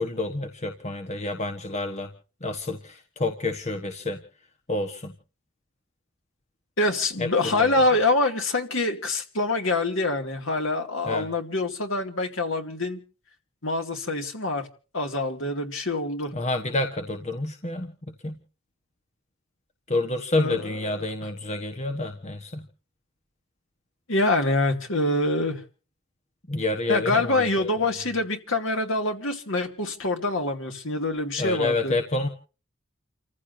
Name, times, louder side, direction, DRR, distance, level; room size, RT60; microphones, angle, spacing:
voice 1, 0.0-2.1 2.4-4.2 4.7-5.1 7.2-7.8 11.1-11.3 16.3-17.9 18.2-18.4 19.9-22.7 26.5-27.7 31.4-32.3, left 2 dB, 30° left, 1.3 m, -28 dB
voice 2, 6.8-13.0 13.6-14.7 14.9-16.3 20.4-20.9 24.1-25.6 26.9-32.0, left 2 dB, 60° left, 2.5 m, -25 dB
29.5 x 15.0 x 2.8 m
head